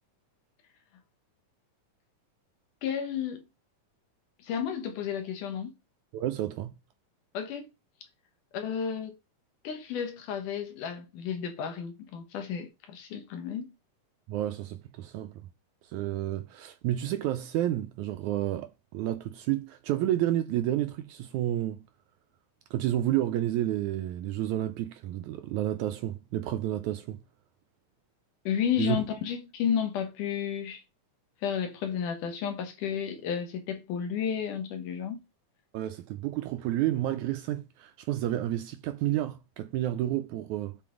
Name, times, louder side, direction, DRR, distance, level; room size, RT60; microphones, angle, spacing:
voice 1, 2.8-3.4 4.4-5.7 7.3-7.7 8.5-9.1 9.6-13.7 28.5-30.8 31.4-35.2, left 8 dB, 75° left, 2.7 m, -32 dB
voice 2, 6.1-6.7 14.3-15.4 15.8-21.8 22.7-27.2 28.8-29.0 35.7-40.8, right 13 dB, 80° right, 1.8 m, -30 dB
7.5 x 4.2 x 3.8 m
omnidirectional pair, 3.8 m